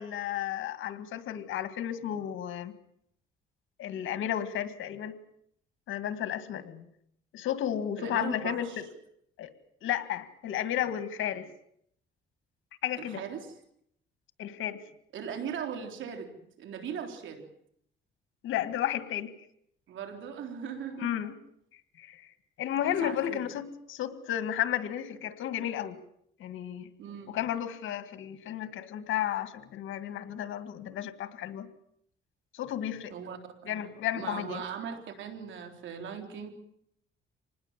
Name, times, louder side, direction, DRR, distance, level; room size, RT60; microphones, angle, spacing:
voice 1, 0.0-2.7 3.8-5.2 5.9-6.9 7.3-8.8 9.4-9.5 9.8-11.5 12.8-13.2 14.4-14.8 18.4-19.3 21.0-21.3 22.0-26.0 26.4-26.9 27.3-31.7 32.5-33.2 33.7-34.6, left 11 dB, 80° left, 11 dB, 1.9 m, -33 dB
voice 2, 8.0-8.8 13.0-13.5 15.1-17.5 19.9-21.1 22.8-23.4 27.0-27.4 33.1-36.5, right 7 dB, 75° right, 5 dB, 3.9 m, -39 dB
25.5 x 19.5 x 7.4 m, 0.72 s
cardioid pair, 90°, 20 cm